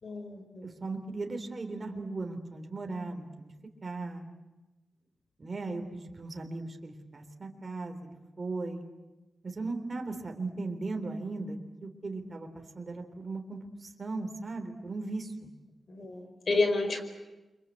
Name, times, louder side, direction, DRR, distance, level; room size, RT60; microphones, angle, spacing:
voice 1, 0.0-0.8 15.9-17.0, left 3 dB, 60° left, 7 dB, 5.1 m, -30 dB
voice 2, 0.6-3.5 3.8-4.3 5.4-8.8 9.4-15.5, right 3 dB, 45° right, 4 dB, 3.5 m, -37 dB
29.0 x 24.5 x 8.3 m, 1.1 s
cardioid pair, 65°, 0 cm